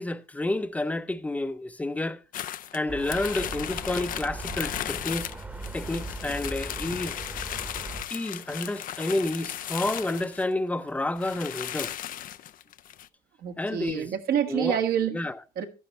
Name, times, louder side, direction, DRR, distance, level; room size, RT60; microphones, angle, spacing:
voice 1, 0.0-2.2 2.7-5.3 5.7-7.2 8.1-11.9 13.6-14.1 14.5-14.8 15.1-15.4, left 2 dB, 10° left, 0.6 m, -30 dB
sound 1, 2.3-10.5 10.9-11.0 11.2-13.1, left 11 dB, 55° left, 0.5 m, -36 dB
sound 2, 2.9-8.0, right 2 dB, 10° right, 1.1 m, -39 dB
voice 2, 13.4-15.2 15.6-15.7, right 9 dB, 65° right, 1.5 m, -27 dB
11.5 x 10.0 x 3.2 m
cardioid pair, 110°, 17 cm